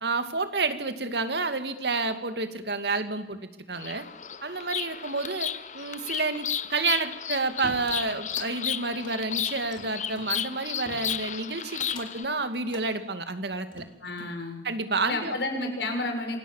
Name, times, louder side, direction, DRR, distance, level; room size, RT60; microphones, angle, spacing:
voice 1, 0.0-3.4 3.7-4.0 4.4-13.8 14.6-15.3, right 3 dB, 70° right, 9 dB, 2.4 m, -29 dB
Bird vocalization bird call bird song, 3.7-12.3, left 8 dB, 40° left, 1.0 m, -33 dB
sound 1, 7.6-8.5 8.9-10.3 10.9-11.4 11.8-12.3 12.7-12.9 13.5-14.4, left 1 dB, 25° left, 3.7 m, -45 dB
voice 2, 14.0-14.6 15.1-16.4, left 2 dB, 70° left, 4 dB, 6.1 m, -31 dB
27.0 x 25.0 x 7.4 m, 1.0 s
head